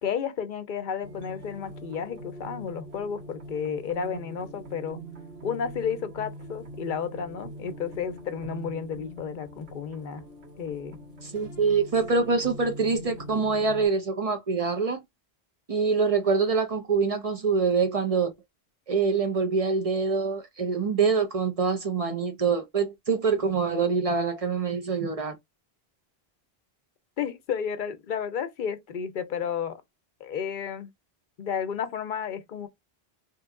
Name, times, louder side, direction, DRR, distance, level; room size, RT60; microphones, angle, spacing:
voice 1, 0.0-5.0 5.4-10.2 10.6-11.0 27.2-29.8 30.2-30.9 31.4-32.7, left 7 dB, 60° left, 0.7 m, -32 dB
sound 1, 1.0-13.9, right 1 dB, 85° right, 1.7 m, -43 dB
voice 2, 11.2-15.0 15.7-18.3 18.9-25.4, right 5 dB, 40° right, 0.7 m, -25 dB
3.0 x 2.2 x 3.6 m
omnidirectional pair, 1.0 m